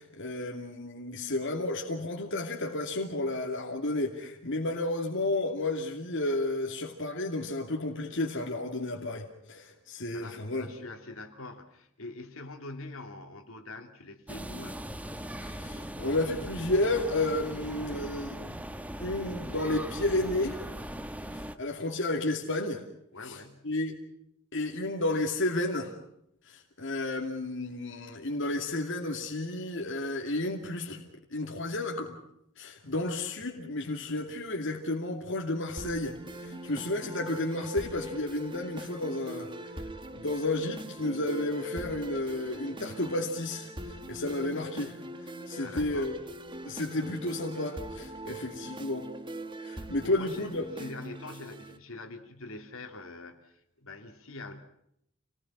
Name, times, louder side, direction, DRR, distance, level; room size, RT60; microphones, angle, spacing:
voice 1, 0.0-10.7 15.4-18.6 19.0-20.6 21.3-22.8 23.2-23.4 23.6-24.0 24.5-25.9 26.4-32.2 32.6-39.5 39.7-39.8 40.2-46.1 46.6-49.1 49.6-50.8, left 2 dB, 65° left, 1 dB, 2.5 m, -32 dB
voice 2, 10.1-14.8 23.1-23.7 45.6-46.1 48.3-48.5 49.7-54.6, left 2 dB, 80° left, 4 dB, 3.1 m, -44 dB
sound 1, 14.3-21.6, equal, 5° right, 1.1 m, -39 dB
sound 2, 35.8-51.8, right 2 dB, 25° right, 1.4 m, -42 dB
28.5 x 19.5 x 5.9 m, 0.75 s
head